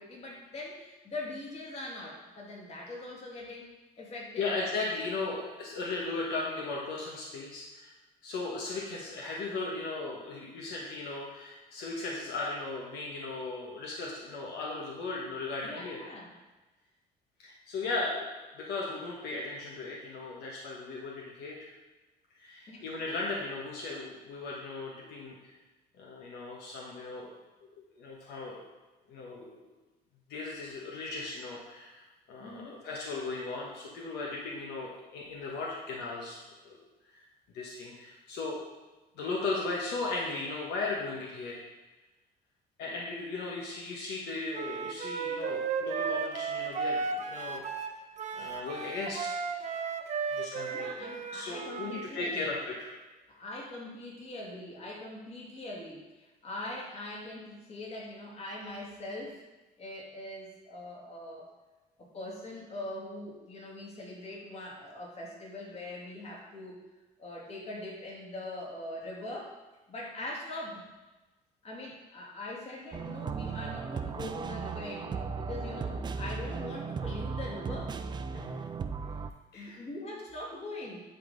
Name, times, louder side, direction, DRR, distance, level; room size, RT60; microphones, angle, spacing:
voice 1, 0.0-4.5 15.6-16.3 22.7-22.8 32.4-32.8 50.7-52.5 53.3-59.4 59.8-61.5 62.0-66.8 67.2-69.6 69.9-70.8 71.6-78.0 79.5-81.0, left 2 dB, 40° left, -3 dB, 2.1 m, -42 dB
voice 2, 4.4-7.9 8.2-16.0 17.4-21.7 22.4-25.5 26.0-27.4 27.7-28.6 29.1-29.6 30.3-36.8 37.1-37.2 37.5-38.6 39.1-41.6 42.8-47.6 48.3-49.4 50.3-50.9 51.3-52.9 78.3-78.7 79.5-79.8, left 3 dB, 80° left, -3 dB, 1.3 m, -37 dB
Wind instrument woodwind instrument, 44.5-52.1, right 5 dB, 45° right, 0.7 m, -34 dB
sound 1, 72.9-79.3, right 5 dB, 25° right, 0.4 m, -36 dB
10.5 x 3.9 x 4.0 m, 1.1 s
cardioid pair, 110°, 17 cm